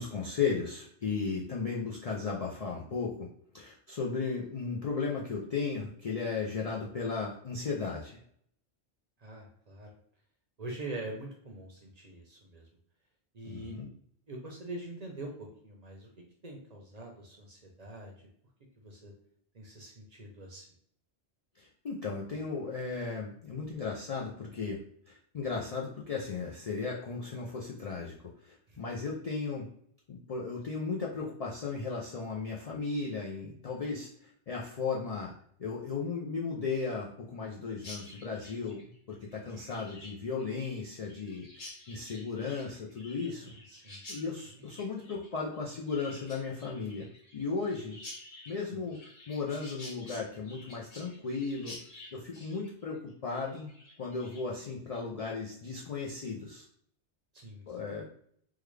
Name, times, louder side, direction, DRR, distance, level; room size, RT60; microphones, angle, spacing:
voice 1, 0.0-3.3 3.5-8.2 13.4-13.9 21.6-24.8 25.1-28.1 28.4-29.7 30.1-35.3 35.6-43.4 44.1-48.0 48.5-49.0 49.3-51.8 52.1-53.7 54.0-56.7 57.7-58.1, left 4 dB, 55° left, -3 dB, 0.4 m, -35 dB
voice 2, 9.2-9.9 10.6-12.7 13.3-13.7 14.3-16.1 16.4-18.3 18.8-19.1 19.5-20.7 28.7-29.0 43.3-44.0 44.5-44.6 57.3-57.8, right 2 dB, 45° right, 0 dB, 0.6 m, -44 dB
Chirp tweet, 37.8-54.6, left 2 dB, 40° left, 0.8 m, -50 dB
3.6 x 2.2 x 3.2 m, 0.64 s
omnidirectional pair, 1.1 m